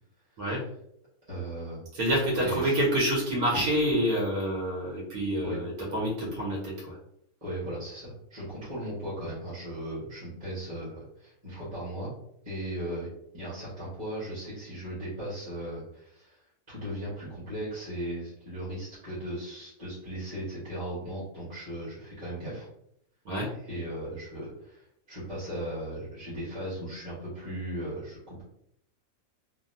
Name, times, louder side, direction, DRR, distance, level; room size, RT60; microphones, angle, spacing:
voice 1, 1.3-1.8 2.4-2.8 5.4-5.6 7.4-12.1 12.4-13.1 13.3-16.4 16.7-22.7 23.5-28.4, right 1 dB, 25° right, -9 dB, 1.2 m, -37 dB
voice 2, 1.9-7.0 23.2-23.5, equal, 80° right, -4 dB, 1.4 m, -27 dB
3.4 x 2.0 x 2.6 m, 0.73 s
omnidirectional pair, 1.5 m